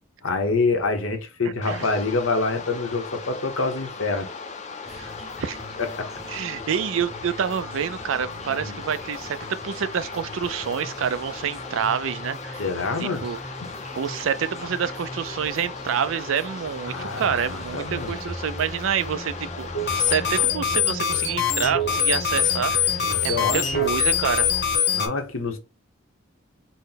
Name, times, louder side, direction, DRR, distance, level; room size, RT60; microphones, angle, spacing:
voice 1, 0.2-4.3 5.8-6.1 8.5-8.8 12.6-13.2 13.6-13.7 16.9-18.2 23.0-23.9 24.9-25.6, left 3 dB, 85° left, 1.0 m, -26 dB
voice 2, 1.4-1.9 4.9-5.0 5.4-5.6 6.3-12.6 13.0-13.4 13.9-19.7 20.0-24.5, right 7 dB, 75° right, 0.4 m, -27 dB
sound 1, 1.6-20.5, left 4 dB, 35° left, 0.5 m, -38 dB
sound 2, 4.9-24.8, equal, ahead, 0.8 m, -40 dB
sound 3, 19.7-25.1, left 7 dB, 55° left, 0.8 m, -23 dB
4.2 x 2.1 x 4.0 m
head